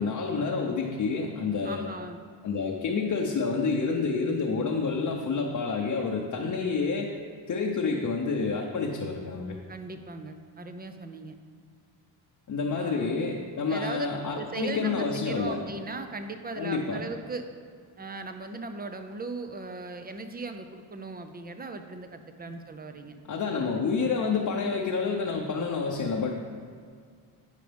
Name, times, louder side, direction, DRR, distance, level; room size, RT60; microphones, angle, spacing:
voice 1, 0.0-1.8 2.4-7.1 7.5-9.6 12.5-15.6 16.6-17.0 23.3-26.4, left 4 dB, 45° left, -1 dB, 0.8 m, -28 dB
voice 2, 1.6-2.2 9.7-11.4 12.7-13.2 13.7-14.1 14.3-17.5 18.0-23.2, right 3 dB, 20° right, 8 dB, 0.6 m, -38 dB
9.2 x 5.0 x 3.4 m, 2.1 s
cardioid pair, 75°, 44 cm